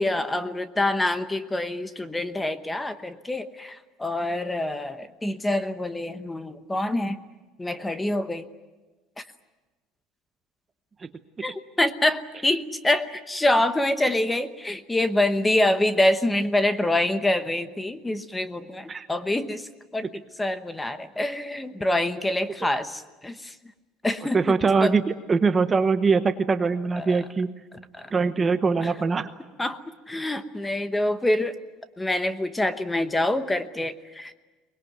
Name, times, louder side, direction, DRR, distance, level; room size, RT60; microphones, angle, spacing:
voice 1, 0.0-7.2 7.6-8.5 9.2-9.3 11.4-23.5 24.0-24.6 24.8-24.9 26.9-27.2 27.9-28.1 28.8-28.9 29.6-29.8 30.1-31.5 32.0-34.3, left 1 dB, 10° left, 11 dB, 1.0 m, -26 dB
voice 2, 24.3-27.5 28.1-29.3, right 4 dB, 20° right, 10 dB, 0.9 m, -22 dB
23.5 x 20.5 x 9.3 m, 1.2 s
cardioid pair, 155°, 0 cm